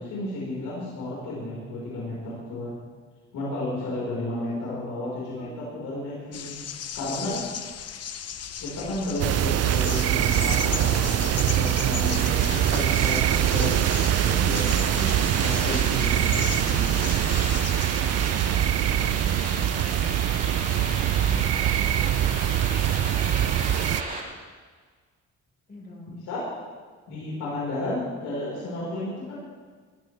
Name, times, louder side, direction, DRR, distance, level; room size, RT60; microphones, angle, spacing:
voice 1, 0.0-2.8 3.3-6.6 6.9-7.4 8.6-13.9 14.2-16.8 26.3-26.4 27.1-29.5, left 2 dB, 90° left, -6 dB, 4.8 m, -32 dB
voice 2, 4.6-5.5 9.2-9.5 18.1-24.0 25.7-26.3, left 1 dB, 35° left, -2 dB, 4.6 m, -46 dB
sound 1, 6.3-18.0, left 8 dB, 55° left, 0.9 m, -37 dB
sound 2, 9.2-24.0, right 12 dB, 55° right, 0.5 m, -23 dB
sound 3, 12.1-24.2, right 2 dB, 30° right, 3.2 m, -34 dB
21.5 x 12.5 x 3.4 m, 1.5 s
cardioid pair, 90°, 30 cm